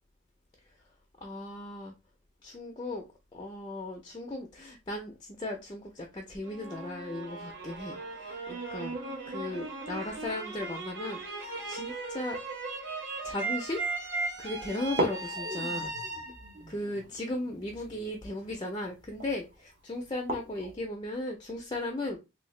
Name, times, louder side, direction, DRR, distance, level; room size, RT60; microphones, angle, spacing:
voice 1, 1.2-1.9 2.4-3.1 3.3-9.0 9.3-12.4 13.2-13.8 14.4-15.9 16.7-22.2, left 1 dB, 20° left, 0.4 m, -36 dB
sound 1, 6.4-17.5, right 3 dB, 55° right, 1.2 m, -37 dB
sound 2, 13.7-13.8 14.2-14.3 14.8-20.8, equal, 40° right, 0.7 m, -38 dB
3.1 x 2.7 x 3.1 m
head